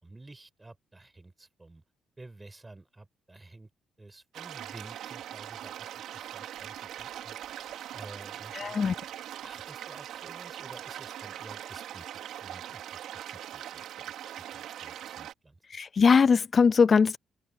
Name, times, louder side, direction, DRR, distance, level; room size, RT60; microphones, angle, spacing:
voice 1, 0.0-1.8 2.2-3.7 4.0-7.4 7.9-9.1 9.4-12.1 12.4-14.2 14.5-15.6, right 2 dB, 15° right, 5.3 m, -51 dB
sound 1, 4.3-15.3, right 11 dB, 80° right, 3.8 m, -41 dB
voice 2, 8.5-9.0 15.7-17.2, left 5 dB, 40° left, 0.4 m, -21 dB
open air
cardioid pair, 90°, 0 cm